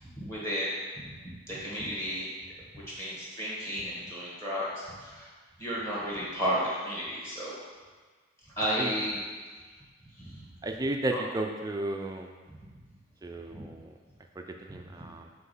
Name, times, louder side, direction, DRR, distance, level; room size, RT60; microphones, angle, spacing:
voice 1, 0.2-0.7 1.2-2.3 2.7-5.3 5.6-7.5 8.6-9.2 10.2-10.3 13.5-13.7, equal, 15° left, -7 dB, 1.4 m, -33 dB
voice 2, 10.6-12.3 13.2-13.9 14.4-15.3, right 1 dB, 20° right, 4 dB, 0.4 m, -33 dB
5.9 x 3.2 x 5.4 m, 1.4 s
head